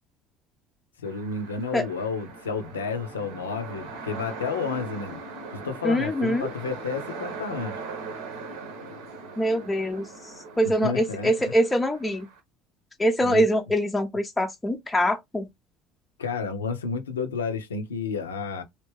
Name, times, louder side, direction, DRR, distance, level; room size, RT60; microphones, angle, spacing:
voice 1, 1.0-5.2 5.5-7.8 10.6-11.5 13.2-13.4 16.2-18.6, left 5 dB, 75° left, 0.6 m, -31 dB
sound 1, 1.0-12.4, right 4 dB, 65° right, 0.8 m, -40 dB
voice 2, 5.8-6.5 9.4-10.1 10.6-12.3 13.0-15.5, equal, 10° left, 0.5 m, -24 dB
3.2 x 2.8 x 3.0 m
figure-of-eight pair, 65°, 0 cm